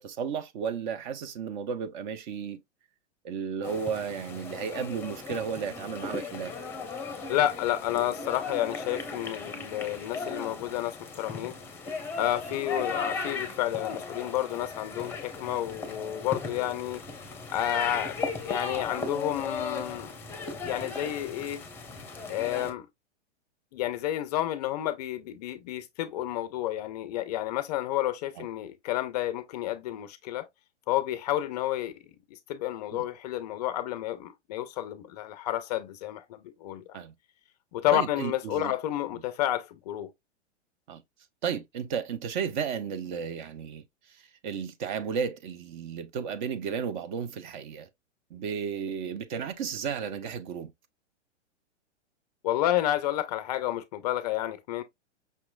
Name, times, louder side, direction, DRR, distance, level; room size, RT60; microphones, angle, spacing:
voice 1, 0.0-2.6 3.2-6.5 28.4-28.5 32.9-33.0 36.9-37.1 37.9-38.7 40.9-41.0 41.4-47.9 48.3-50.7, right 7 dB, 40° right, 0.5 m, -33 dB
sound 1, 3.6-22.7, left 4 dB, 5° left, 0.8 m, -37 dB
voice 2, 7.3-11.6 12.2-17.0 17.5-18.2 18.4-20.1 20.6-21.6 22.3-22.9 23.7-30.5 30.9-31.9 32.3-37.0 37.7-40.1 52.4-54.8, left 13 dB, 35° left, 0.4 m, -30 dB
5.5 x 2.9 x 2.2 m
hypercardioid pair, 120°, 36 cm